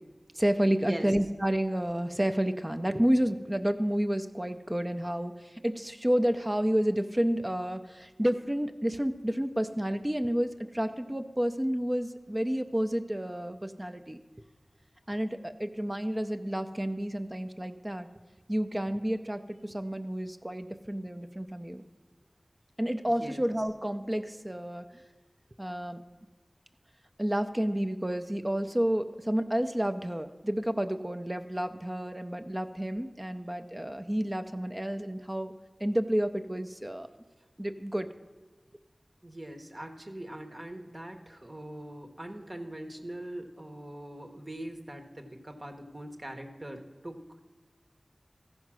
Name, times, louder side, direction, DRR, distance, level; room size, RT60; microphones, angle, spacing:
voice 1, 0.4-14.2 15.1-18.1 18.5-21.9 22.8-24.9 25.6-26.0 27.2-35.5 35.8-37.1 37.6-38.1, equal, 20° right, 7 dB, 0.5 m, -30 dB
voice 2, 39.2-47.5, right 1 dB, 40° right, 4 dB, 1.0 m, -41 dB
14.0 x 5.3 x 6.0 m, 1.2 s
wide cardioid pair, 60°, 0 cm